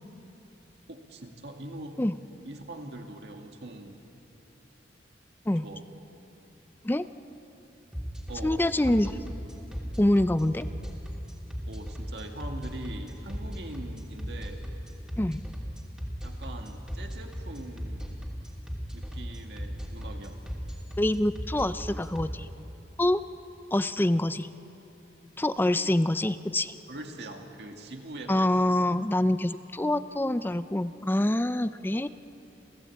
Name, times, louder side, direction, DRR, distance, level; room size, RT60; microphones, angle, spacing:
voice 1, 0.9-2.0 2.5-4.0 5.6-5.8 8.3-9.2 11.7-14.7 16.2-18.3 18.9-20.4 26.9-28.8, right 1 dB, 65° right, 3 dB, 2.2 m, -42 dB
sound 1, 7.9-22.2, equal, 5° right, 3.0 m, -36 dB
voice 2, 8.4-9.1 10.0-10.7 15.2-15.4 21.0-22.5 23.0-23.2 23.7-24.5 25.4-26.8 28.3-32.1, left 1 dB, 10° left, 13 dB, 0.5 m, -25 dB
29.5 x 15.5 x 8.6 m, 3.0 s
head